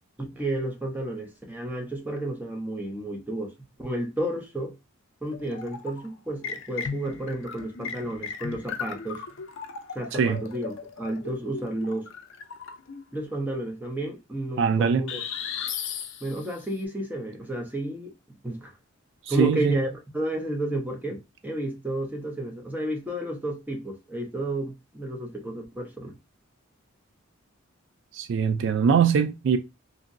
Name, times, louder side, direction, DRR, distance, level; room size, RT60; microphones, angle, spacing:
voice 1, 0.2-3.5 3.8-4.7 5.2-9.2 9.9-12.1 13.1-15.2 16.2-18.1 18.4-18.7 19.3-19.9 20.1-26.1, right 1 dB, 10° right, 0.6 m, -31 dB
sound 1, 5.2-6.1 6.4-13.0 15.1-16.6, left 6 dB, 60° left, 0.5 m, -36 dB
voice 2, 14.6-15.0 19.3-19.8 28.1-29.6, right 6 dB, 60° right, 0.3 m, -22 dB
2.9 x 2.6 x 2.6 m
head